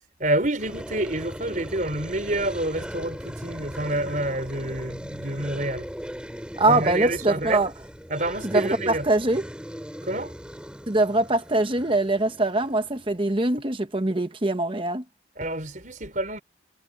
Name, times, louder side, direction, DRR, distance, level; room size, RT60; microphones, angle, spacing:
voice 1, 0.2-5.9 6.7-7.7 8.1-9.1 10.0-10.4 15.4-16.4, right 1 dB, 45° right, 4.8 m, -28 dB
sound 1, 0.6-13.5, equal, 5° right, 5.4 m, -39 dB
voice 2, 6.6-7.7 8.5-9.4 10.9-15.0, right 2 dB, 25° right, 1.1 m, -23 dB
head